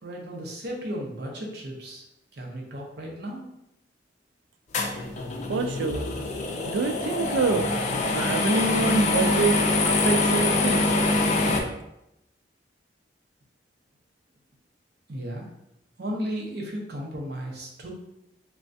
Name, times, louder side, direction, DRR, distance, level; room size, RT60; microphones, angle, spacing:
voice 1, 0.0-2.1 2.3-3.4 15.1-15.5 16.0-17.9, equal, 60° right, -1 dB, 0.7 m, -34 dB
sound 1, 4.7-11.6, left 2 dB, 40° left, 0.3 m, -24 dB
voice 2, 5.5-6.2 6.7-7.7 8.1-9.6 9.8-10.8, right 4 dB, 85° right, 8 dB, 0.3 m, -26 dB
3.3 x 2.2 x 2.6 m, 0.84 s
head